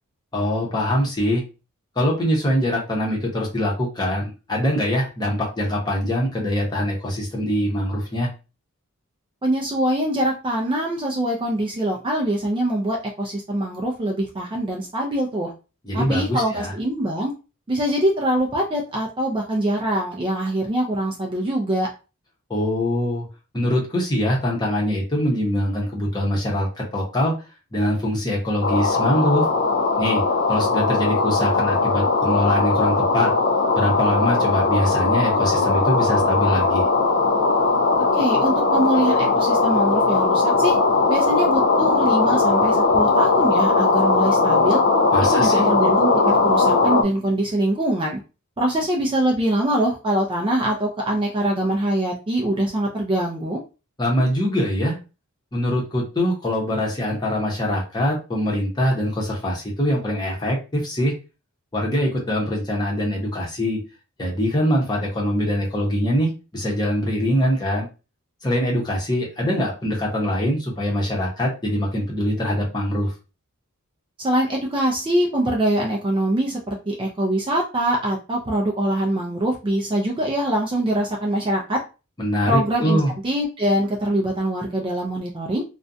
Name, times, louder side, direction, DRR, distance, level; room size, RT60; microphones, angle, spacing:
voice 1, 0.3-1.4 2.0-8.3 15.8-16.7 22.5-23.2 23.5-27.4 27.7-29.5 30.0-30.2 30.5-33.3 33.7-36.9 45.1-45.7 54.0-55.0 55.5-61.1 61.7-63.8 64.2-67.9 68.4-73.1 82.2-83.1, equal, 20° left, -3 dB, 0.8 m, -23 dB
voice 2, 9.4-15.5 15.9-17.3 17.7-21.9 38.1-40.8 41.1-44.8 45.3-48.2 48.6-53.6 74.2-81.8 82.4-85.6, right 1 dB, 25° right, -1 dB, 0.4 m, -23 dB
sound 1, 28.6-47.0, left 3 dB, 50° left, 0.3 m, -19 dB
2.5 x 2.2 x 2.5 m, 0.31 s
head